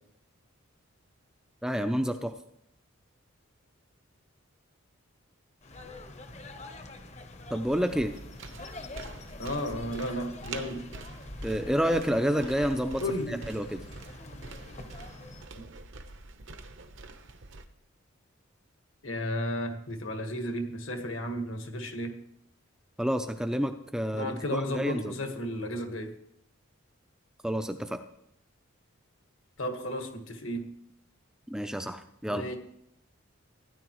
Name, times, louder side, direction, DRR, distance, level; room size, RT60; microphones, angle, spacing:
voice 1, 1.6-2.3 7.5-8.1 11.4-13.0 13.5-13.8 23.0-25.2 27.4-28.0 31.5-32.5, equal, 5° right, 7 dB, 0.4 m, -29 dB
sound 1, 5.6-15.5, left 2 dB, 30° left, 0.9 m, -45 dB
sound 2, 7.6-17.6, right 3 dB, 60° right, 0.9 m, -45 dB
voice 2, 9.4-10.8 13.0-13.4 15.5-15.6 19.0-22.1 24.1-26.1 29.6-30.6 32.3-32.6, equal, 70° left, 4 dB, 1.6 m, -33 dB
16.5 x 10.0 x 3.1 m, 0.73 s
head